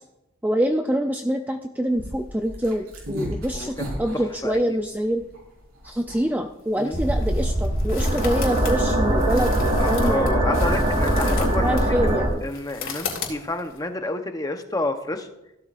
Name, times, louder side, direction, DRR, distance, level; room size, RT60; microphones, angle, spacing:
voice 1, 0.4-5.2 5.8-10.6 11.6-12.4, equal, 10° right, 5 dB, 0.4 m, -25 dB
sound 1, 1.9-7.0, equal, 85° right, 4.5 m, -36 dB
voice 2, 3.5-3.9 4.1-4.8 6.8-7.0 9.8-15.3, left 2 dB, 15° left, 6 dB, 0.9 m, -30 dB
sound 2, 6.6-13.8, left 6 dB, 65° left, 2.7 m, -37 dB
sound 3, 6.9-12.3, right 1 dB, 30° right, 2.9 m, -22 dB
15.5 x 12.5 x 2.5 m, 0.90 s
head